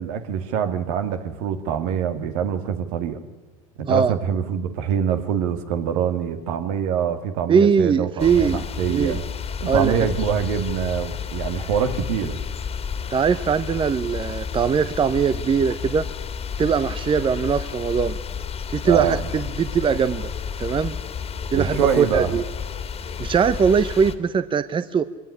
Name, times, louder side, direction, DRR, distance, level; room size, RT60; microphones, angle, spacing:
voice 1, 0.0-3.2 3.8-9.2 9.6-12.4 18.8-19.3 21.5-22.3, right 8 dB, 70° right, 8 dB, 2.3 m, -25 dB
voice 2, 7.5-9.2 9.7-9.9 13.1-16.1 16.6-18.2 18.7-20.3 20.6-20.9 21.5-22.4 23.2-25.0, right 6 dB, 25° right, 13 dB, 1.0 m, -21 dB
sound 1, 8.2-24.1, left 7 dB, 35° left, 2.3 m, -31 dB
23.0 x 18.5 x 9.9 m, 1.2 s
hypercardioid pair, 85°, 18 cm